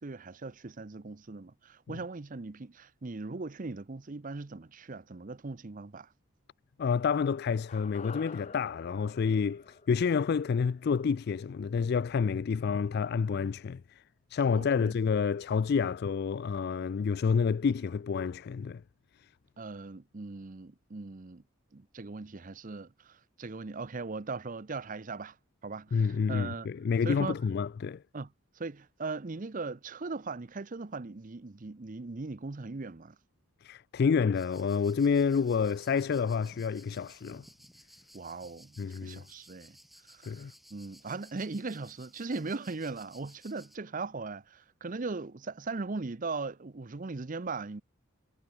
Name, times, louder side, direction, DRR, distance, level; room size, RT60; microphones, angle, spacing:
voice 1, 0.0-6.1 14.5-14.9 19.6-21.4 21.7-25.4 25.6-26.7 27.0-27.4 28.1-28.3 28.6-33.2 38.1-39.8 40.1-47.8, right 3 dB, 40° right, 0.7 m, -39 dB
voice 2, 6.8-14.0 14.3-18.8 19.2-19.3 25.9-28.0 33.6-37.4 38.8-39.2 40.2-40.5, left 6 dB, 50° left, 0.3 m, -29 dB
sound 1, 7.7-12.0 12.3-12.4, left 4 dB, 35° left, 1.0 m, -50 dB
sound 2, 34.3-43.8, equal, ahead, 1.2 m, -58 dB
head